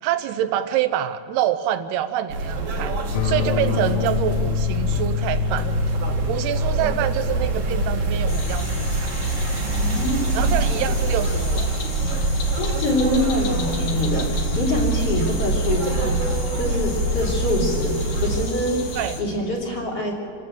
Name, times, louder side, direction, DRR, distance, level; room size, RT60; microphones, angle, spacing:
voice 1, 0.0-2.9 3.2-5.7 6.3-9.1 10.3-11.7 19.0-19.2, right 11 dB, 80° right, 10 dB, 2.6 m, -26 dB
sound 1, 2.3-18.4, right 2 dB, 45° right, 2.1 m, -25 dB
sound 2, 3.1-13.1, left 15 dB, 90° left, 1.9 m, -30 dB
sound 3, 8.3-19.2, left 2 dB, 55° left, 3.2 m, -33 dB
voice 2, 9.8-10.5 12.6-16.2 16.5-18.8 19.2-20.1, left 1 dB, 40° left, 0 dB, 3.7 m, -25 dB
27.0 x 14.5 x 7.6 m, 2.6 s
omnidirectional pair, 4.8 m